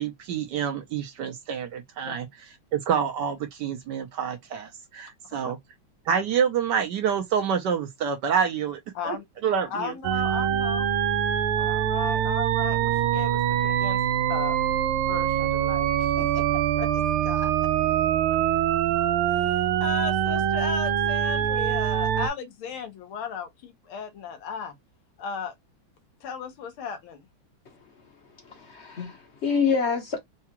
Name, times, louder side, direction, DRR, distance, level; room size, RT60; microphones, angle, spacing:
voice 1, 0.0-2.3 2.7-5.6 6.1-9.2 9.4-9.9, right 7 dB, 70° right, 1.1 m, -27 dB
voice 2, 9.7-10.9 11.6-14.0 14.3-14.6 15.1-17.5 19.3-24.8 25.2-25.5 26.2-27.2, left 6 dB, 90° left, 1.9 m, -36 dB
sound 1, 10.0-22.3, right 10 dB, 90° right, 1.5 m, -24 dB
voice 3, 28.5-30.2, left 5 dB, 50° left, 0.8 m, -26 dB
4.7 x 2.3 x 2.9 m
omnidirectional pair, 2.3 m